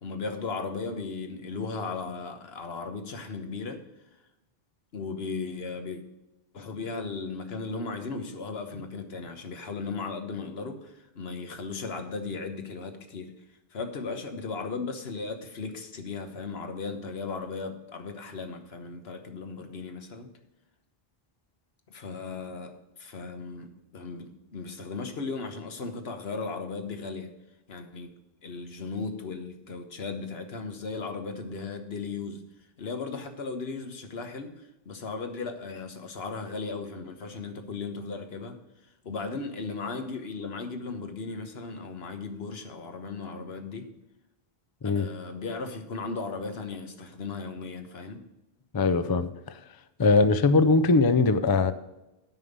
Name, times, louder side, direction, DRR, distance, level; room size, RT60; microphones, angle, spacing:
voice 1, 0.0-3.8 4.9-6.0 6.5-13.3 13.7-20.3 21.9-22.7 23.0-27.3 27.7-28.1 28.4-32.4 32.8-34.5 34.8-38.6 39.0-43.9 44.9-48.2, left 4 dB, 80° left, 6 dB, 1.4 m, -36 dB
voice 2, 48.7-49.3 50.0-51.7, left 3 dB, 30° left, 12 dB, 0.4 m, -21 dB
9.0 x 5.4 x 7.9 m, 0.96 s
omnidirectional pair, 1.0 m